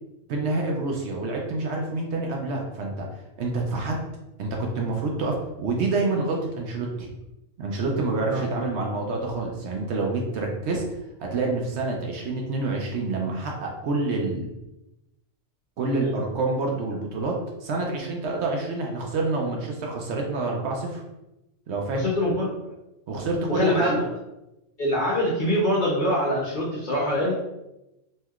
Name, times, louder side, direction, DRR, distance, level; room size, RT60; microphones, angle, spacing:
voice 1, 0.3-3.1 3.4-4.0 4.4-7.1 7.6-10.8 11.2-14.5 15.8-17.3 17.6-21.0 21.7-22.0 23.1-24.0, right 3 dB, 65° right, 0 dB, 0.8 m, -27 dB
voice 2, 21.9-22.5 23.5-24.0 24.8-27.3, left 1 dB, 50° left, -5 dB, 0.6 m, -24 dB
3.1 x 2.7 x 2.3 m, 0.91 s
omnidirectional pair, 1.4 m